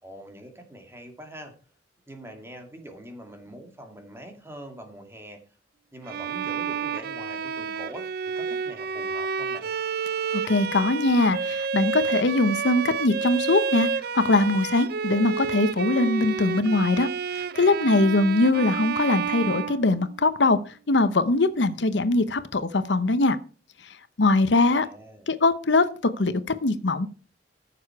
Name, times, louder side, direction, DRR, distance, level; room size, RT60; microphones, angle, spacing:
voice 1, 0.0-1.5 2.1-5.4 5.9-8.1 8.4-9.7 24.7-25.3, right 1 dB, 15° right, 5 dB, 2.2 m, -43 dB
Bowed string instrument, 6.1-20.4, right 6 dB, 55° right, 0.5 m, -30 dB
voice 2, 10.5-13.9 14.1-17.1 17.3-23.4 24.2-24.9 25.3-25.9 26.2-27.1, left 2 dB, 70° left, 13 dB, 0.8 m, -22 dB
14.5 x 6.9 x 4.7 m, 0.36 s
head